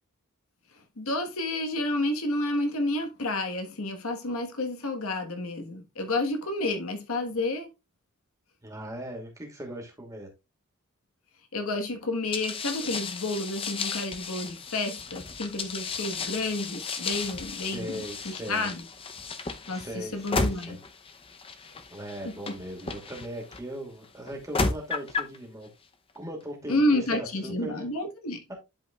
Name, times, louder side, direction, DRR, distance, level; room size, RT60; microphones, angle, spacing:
voice 1, 1.0-7.7 11.5-18.9 19.7-20.8 21.6-21.7 22.2-22.4 26.7-28.4, left 2 dB, 75° left, 1.3 m, -30 dB
voice 2, 8.6-10.3 17.6-18.7 19.7-20.8 21.9-25.7 26.1-27.9 28.5-28.6, equal, 15° right, 2.4 m, -39 dB
sound 1, 12.3-23.6 24.3-25.4, left 4 dB, 25° left, 0.6 m, -34 dB
11.0 x 5.1 x 2.3 m
head